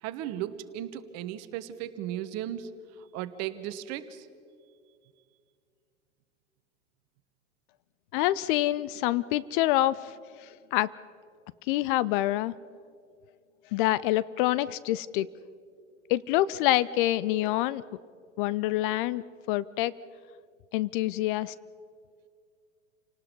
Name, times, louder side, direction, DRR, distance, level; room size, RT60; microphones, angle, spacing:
voice 1, 0.0-2.7 3.0-4.3, right 11 dB, 40° right, 12 dB, 1.4 m, -36 dB
voice 2, 8.1-10.1 10.4-10.9 11.7-12.5 13.7-15.3 16.1-17.8 18.4-19.2 19.5-19.9 20.7-21.5, left 15 dB, 45° left, 18 dB, 0.5 m, -26 dB
28.5 x 18.5 x 5.4 m, 2.3 s
hypercardioid pair, 95°, 37 cm